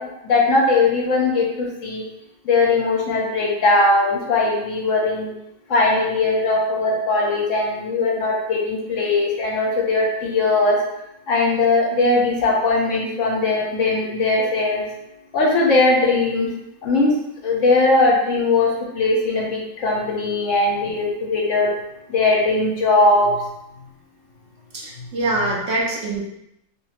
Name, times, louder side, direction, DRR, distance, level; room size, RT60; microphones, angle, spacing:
voice 1, 0.0-2.0 2.4-5.3 5.7-10.8 11.3-14.8 15.3-16.5 16.8-17.1 17.4-21.7 22.1-23.4, left 2 dB, 60° left, -2 dB, 1.0 m, -19 dB
voice 2, 24.7-26.3, right 2 dB, 60° right, -3 dB, 1.0 m, -24 dB
4.1 x 2.7 x 2.9 m, 0.83 s
omnidirectional pair, 1.6 m